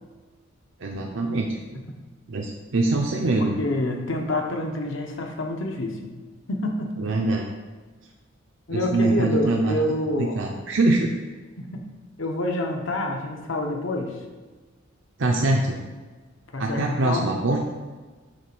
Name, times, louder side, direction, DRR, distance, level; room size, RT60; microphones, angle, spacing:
voice 1, 0.8-1.8 2.3-3.6 7.0-7.5 8.7-9.8 10.2-11.1 15.2-15.8 16.6-17.6, right 2 dB, 60° right, 0 dB, 0.6 m, -23 dB
voice 2, 3.4-6.1 6.5-6.9 8.7-10.4 11.6-11.8 12.2-14.2 16.5-17.3, left 1 dB, 60° left, 2 dB, 0.9 m, -27 dB
8.0 x 3.3 x 6.0 m, 1.3 s
head